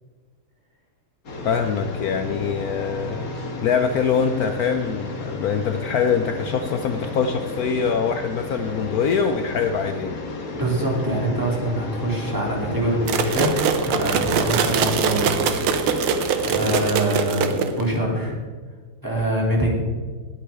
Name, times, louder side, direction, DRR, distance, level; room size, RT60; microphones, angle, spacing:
sound 1, 1.2-16.9, left 2 dB, 45° left, 1.8 m, -33 dB
voice 1, 1.4-3.3 3.6-10.2, left 6 dB, 75° left, 7 dB, 0.8 m, -23 dB
voice 2, 10.6-13.5 13.8-15.3 16.4-18.4 19.0-19.9, right 1 dB, 10° right, -3 dB, 2.9 m, -24 dB
sound 2, 13.1-18.0, right 6 dB, 80° right, 1.8 m, -22 dB
19.5 x 8.4 x 3.6 m, 1.5 s
omnidirectional pair, 2.4 m